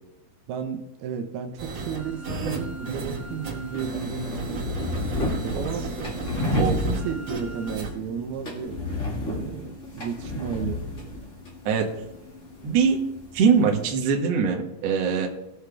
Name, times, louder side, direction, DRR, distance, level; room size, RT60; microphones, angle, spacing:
voice 1, 0.5-4.9 5.4-5.9 6.5-8.8 9.2-10.8, right 7 dB, 80° right, 4 dB, 2.9 m, -33 dB
sound 1, 1.6-7.9, right 2 dB, 40° right, 2.0 m, -33 dB
sound 2, 2.9-13.9, left 2 dB, 30° left, 1.5 m, -32 dB
voice 2, 11.7-12.0 12.6-13.1 13.3-15.3, right 6 dB, 55° right, 1 dB, 2.0 m, -22 dB
19.5 x 6.5 x 3.5 m, 0.96 s
omnidirectional pair, 4.5 m